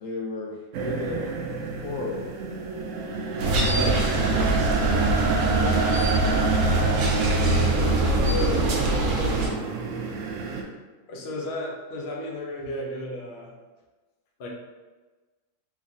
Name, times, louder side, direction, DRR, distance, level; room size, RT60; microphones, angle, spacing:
voice 1, 0.0-1.3 1.8-2.3 3.4-3.9 4.3-5.1 5.5-6.1 8.2-9.9, left 3 dB, 85° left, -3 dB, 1.5 m, -34 dB
sound 1, 0.7-10.6, right 4 dB, 90° right, 0.6 m, -28 dB
sound 2, 3.4-9.5, right 2 dB, 65° right, 1.1 m, -23 dB
voice 2, 3.7-4.1 11.1-13.5 14.4-14.5, equal, 70° left, -1 dB, 0.6 m, -33 dB
3.7 x 3.1 x 2.7 m, 1.3 s
omnidirectional pair, 1.9 m